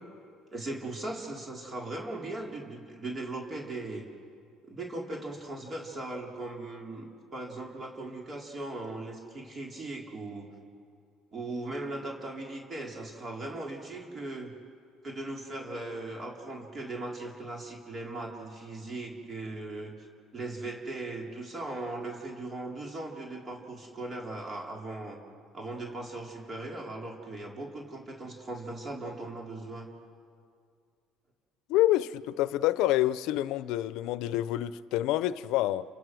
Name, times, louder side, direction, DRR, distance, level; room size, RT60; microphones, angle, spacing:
voice 1, 0.5-4.1 4.6-10.5 11.3-14.5 15.0-20.0 20.3-25.2 25.5-29.9, right 2 dB, 30° right, 3.9 m, -38 dB
voice 2, 31.7-35.8, left 15 dB, 80° left, 0.7 m, -27 dB
30.0 x 26.0 x 6.3 m
cardioid pair, 115°, 0 cm